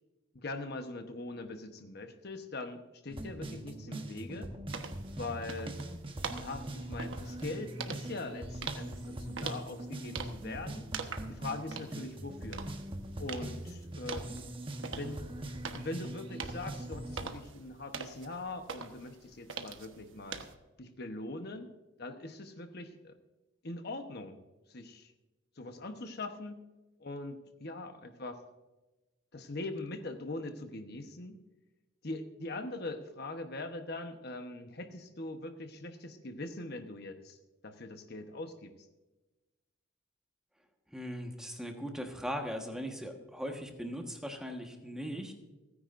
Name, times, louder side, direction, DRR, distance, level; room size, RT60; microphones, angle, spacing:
voice 1, 0.3-4.5 5.1-5.8 6.3-10.9 11.3-12.6 13.2-14.4 14.8-15.2 15.7-20.4 20.8-21.7 22.0-23.1 23.6-24.4 24.7-25.1 25.6-26.6 27.0-28.4 29.3-31.4 32.0-37.4 37.6-38.7, left 2 dB, 50° left, 6 dB, 1.0 m, -42 dB
sound 1, 3.1-17.3, right 1 dB, 25° right, 1.1 m, -42 dB
sound 2, 4.7-20.5, right 5 dB, 65° right, 1.2 m, -44 dB
voice 2, 40.9-45.3, equal, 5° right, 2 dB, 1.4 m, -39 dB
29.5 x 9.9 x 2.6 m, 1.1 s
head